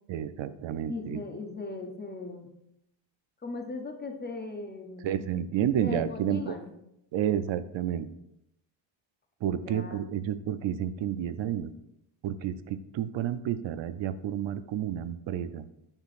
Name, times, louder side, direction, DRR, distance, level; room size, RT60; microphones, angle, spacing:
voice 1, 0.1-1.2 5.0-6.5 7.1-8.1 9.4-11.7 12.2-15.7, right 10 dB, 70° right, 12 dB, 0.5 m, -30 dB
voice 2, 0.9-2.5 3.4-5.1 5.8-6.7 9.5-10.0, left 3 dB, 20° left, 5 dB, 0.5 m, -38 dB
8.8 x 5.9 x 2.5 m, 0.80 s
wide cardioid pair, 175°, 48 cm